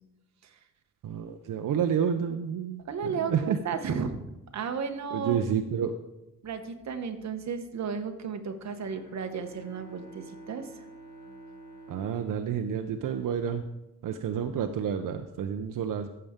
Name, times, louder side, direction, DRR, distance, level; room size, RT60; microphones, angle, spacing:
voice 1, 1.0-3.6 5.1-5.9 11.9-13.6 14.0-16.1, right 8 dB, 80° right, 7 dB, 0.6 m, -29 dB
voice 2, 2.8-4.1 4.5-5.4 6.4-10.8, right 6 dB, 60° right, 7 dB, 1.0 m, -34 dB
Bowed string instrument, 8.7-13.6, right 2 dB, 80° left, 1.5 m, -49 dB
14.0 x 6.7 x 3.6 m, 0.91 s
wide cardioid pair, 160°, 32 cm